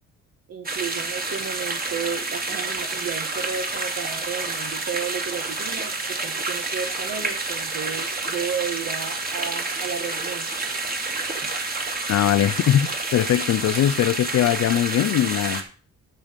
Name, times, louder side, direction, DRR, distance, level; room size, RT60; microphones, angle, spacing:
voice 1, 0.5-10.5 11.4-11.5, right 7 dB, 55° right, 1.6 m, -33 dB
sound 1, 0.6-15.6, right 3 dB, 30° right, 2.6 m, -29 dB
voice 2, 12.1-15.6, left 11 dB, 60° left, 0.6 m, -21 dB
12.5 x 6.9 x 5.2 m
cardioid pair, 90°, 30 cm